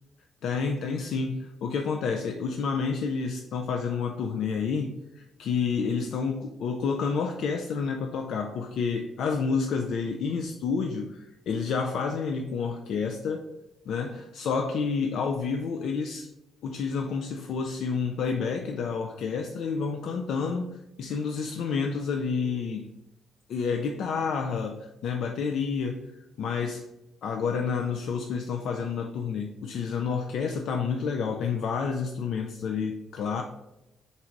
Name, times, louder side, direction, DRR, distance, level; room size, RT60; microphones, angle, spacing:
voice 1, 0.4-13.4 13.9-16.3 16.6-22.9 23.5-26.1 26.4-26.9 27.2-33.4, left 5 dB, 70° left, 3 dB, 0.4 m, -29 dB
4.0 x 2.5 x 4.5 m, 0.93 s
cardioid pair, 90°, 0 cm